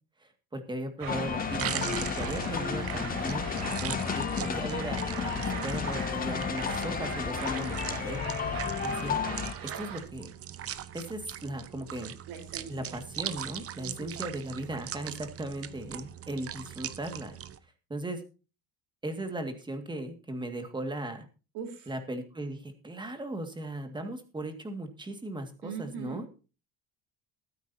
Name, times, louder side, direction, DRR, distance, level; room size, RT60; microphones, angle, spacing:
voice 1, 0.2-3.5 3.8-9.2 9.6-10.3 10.9-12.1 12.7-17.3 17.9-18.2 19.0-21.3 21.9-26.3, right 1 dB, 10° right, 7 dB, 2.0 m, -37 dB
sound 1, 1.0-10.0, right 8 dB, 60° right, 3.2 m, -40 dB
sound 2, 1.1-9.5, left 7 dB, 25° left, 0.6 m, -32 dB
sound 3, 1.4-17.6, right 10 dB, 35° right, 0.9 m, -41 dB
voice 2, 12.3-12.9 13.8-14.2 21.5-21.9 25.6-26.2, right 7 dB, 80° right, 4 dB, 4.2 m, -41 dB
21.5 x 9.7 x 2.8 m, 0.33 s
cardioid pair, 155°, 38 cm